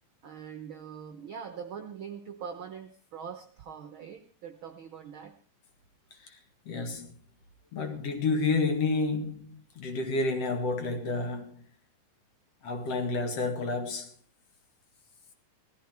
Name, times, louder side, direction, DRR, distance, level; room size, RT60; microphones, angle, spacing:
voice 1, 0.2-5.4, right 7 dB, 60° right, 1.4 m, -42 dB
voice 2, 6.7-7.1 7.7-11.7 12.6-14.1, left 3 dB, 55° left, 3.0 m, -30 dB
17.5 x 13.5 x 4.5 m
omnidirectional pair, 3.6 m